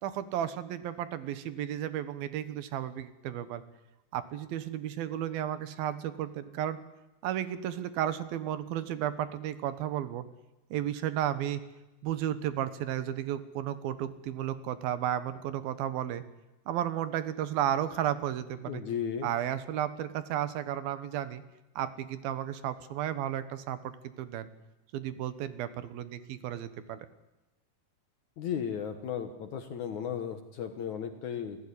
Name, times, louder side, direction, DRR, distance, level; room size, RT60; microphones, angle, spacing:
voice 1, 0.0-3.6 4.1-6.8 7.2-10.2 10.7-11.6 12.0-16.2 16.7-18.8 19.2-21.4 21.8-24.5 24.9-27.1, right 11 dB, 70° right, 13 dB, 2.9 m, -33 dB
voice 2, 18.7-19.3 28.4-31.6, left 8 dB, 65° left, 8 dB, 2.1 m, -35 dB
27.0 x 16.0 x 9.9 m, 1.0 s
omnidirectional pair, 4.7 m